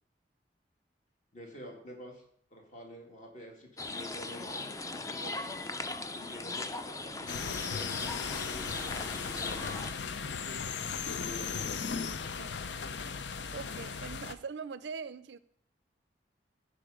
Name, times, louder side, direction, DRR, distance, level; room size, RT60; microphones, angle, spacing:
voice 1, 1.3-2.2 2.5-4.8 6.1-10.0 10.3-12.0, left 1 dB, 45° left, 0 dB, 2.2 m, -49 dB
sound 1, 3.8-9.9, left 3 dB, 20° left, 0.5 m, -39 dB
voice 2, 5.2-5.6 12.4-12.6 13.5-15.4, right 5 dB, 75° right, 16 dB, 0.5 m, -42 dB
sound 2, 7.3-14.3, left 6 dB, 80° left, 0.6 m, -37 dB
15.0 x 5.1 x 5.0 m, 0.66 s
head